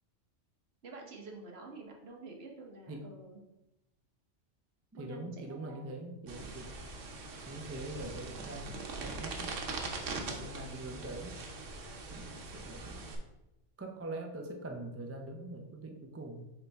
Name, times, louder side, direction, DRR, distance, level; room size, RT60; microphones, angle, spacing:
voice 1, 0.8-3.4 5.0-5.9, right 3 dB, 60° right, 1 dB, 1.3 m, -49 dB
voice 2, 4.9-6.7 7.5-9.5 10.3-11.4 12.1-13.1 13.8-16.4, right 2 dB, 20° right, 3 dB, 0.4 m, -43 dB
sound 1, 6.3-13.1, right 3 dB, 85° right, 1.3 m, -42 dB
7.0 x 4.3 x 3.5 m, 0.93 s
omnidirectional pair, 1.2 m